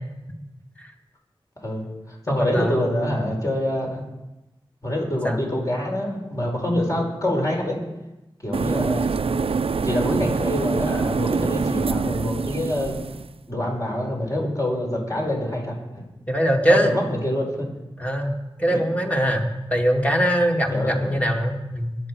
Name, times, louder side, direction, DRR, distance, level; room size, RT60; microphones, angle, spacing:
voice 1, 1.6-4.0 4.8-7.8 8.4-9.2 9.8-13.0 13.5-16.0 16.7-17.7 18.7-18.8 20.7-21.1, left 1 dB, 35° left, -1 dB, 5.0 m, -26 dB
voice 2, 2.3-3.2 5.2-5.4 16.3-16.9 18.0-22.0, equal, 15° left, 2 dB, 2.1 m, -22 dB
sound 1, 8.5-13.3, right 5 dB, 75° right, 0.5 m, -25 dB
22.0 x 8.3 x 4.8 m, 0.98 s
wide cardioid pair, 55°, 10 cm